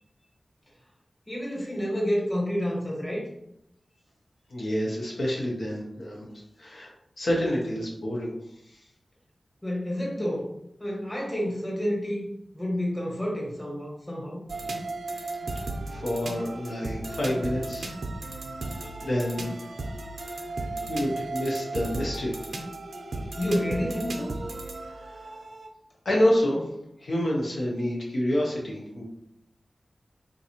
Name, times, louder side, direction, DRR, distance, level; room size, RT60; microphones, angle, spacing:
voice 1, 1.3-3.2 9.6-10.5 10.8-12.3 12.5-14.4 23.4-24.3, equal, 25° left, -3 dB, 1.5 m, -29 dB
voice 2, 4.5-6.3 6.6-8.3 15.9-17.9 19.0-19.5 20.2-20.4 20.9-22.3 25.0-25.4 26.0-26.6 27.0-29.0, left 1 dB, 85° left, -4 dB, 0.8 m, -28 dB
sound 1, 14.5-25.7, right 2 dB, 90° right, 0.4 m, -35 dB
3.7 x 2.6 x 2.9 m, 0.77 s
cardioid pair, 50°, 0 cm